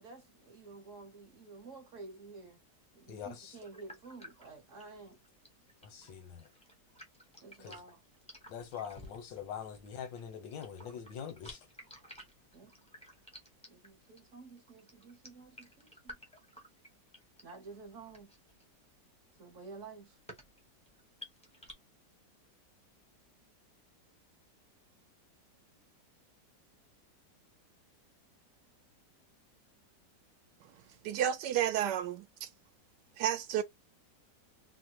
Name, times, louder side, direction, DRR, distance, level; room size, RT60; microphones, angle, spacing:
voice 1, 0.0-2.6 2.9-5.2 7.4-8.0 12.5-12.8 13.7-16.2 17.4-18.3 19.4-20.2, right 3 dB, 55° right, 1.0 m, -51 dB
voice 2, 3.1-3.6 5.8-6.5 7.6-7.8 8.5-11.6, left 8 dB, 85° left, 1.5 m, -43 dB
sound 1, 3.5-21.7, equal, 5° left, 0.5 m, -55 dB
voice 3, 31.0-32.5 33.2-33.6, right 10 dB, 75° right, 1.1 m, -31 dB
3.3 x 2.1 x 2.8 m
omnidirectional pair, 1.9 m